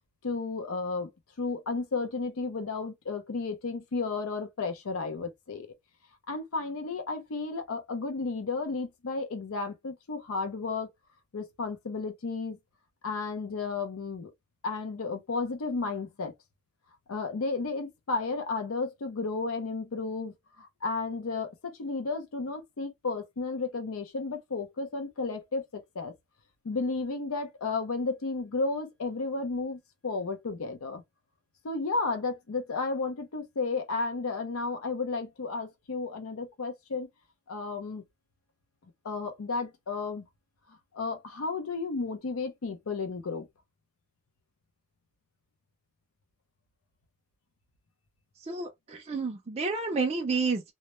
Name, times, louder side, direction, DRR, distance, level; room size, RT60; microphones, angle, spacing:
voice 1, 0.2-1.1 1.4-5.7 6.3-10.9 11.3-12.6 13.0-14.3 14.6-16.3 17.1-26.1 26.6-31.0 31.6-37.1 37.5-38.0 39.0-40.3 40.9-43.5, left 3 dB, 90° left, 0.6 m, -33 dB
voice 2, 48.5-50.6, right 4 dB, 30° right, 0.3 m, -30 dB
2.1 x 2.1 x 2.9 m
head